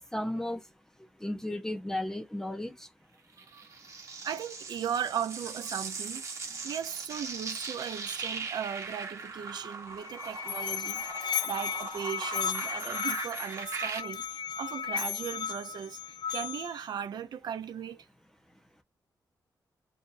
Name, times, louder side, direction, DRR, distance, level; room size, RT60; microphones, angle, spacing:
voice 1, 0.1-0.6 1.2-2.7, left 1 dB, 5° left, 0.7 m, -33 dB
sound 1, 3.4-14.0, right 4 dB, 45° right, 0.9 m, -40 dB
voice 2, 4.2-6.2 6.5-11.0 11.4-18.1, right 8 dB, 75° right, 0.6 m, -37 dB
Musical instrument, 9.9-16.9, left 8 dB, 75° left, 0.4 m, -35 dB
2.7 x 2.4 x 4.0 m
wide cardioid pair, 180°, 7 cm